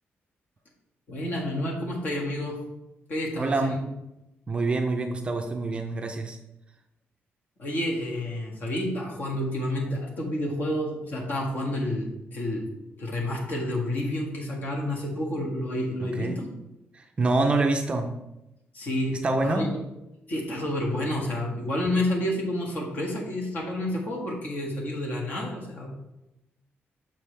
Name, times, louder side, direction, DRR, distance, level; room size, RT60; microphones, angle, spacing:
voice 1, 1.1-2.6 3.1-3.8 7.6-12.6 13.0-16.5 18.7-19.7 20.3-25.9, left 1 dB, 45° left, -1 dB, 1.6 m, -29 dB
voice 2, 3.4-3.8 4.5-6.4 16.0-16.4 16.9-18.1 19.2-19.7, right 3 dB, 25° right, 4 dB, 0.5 m, -26 dB
7.2 x 6.0 x 3.3 m, 0.91 s
wide cardioid pair, 180°, 4 cm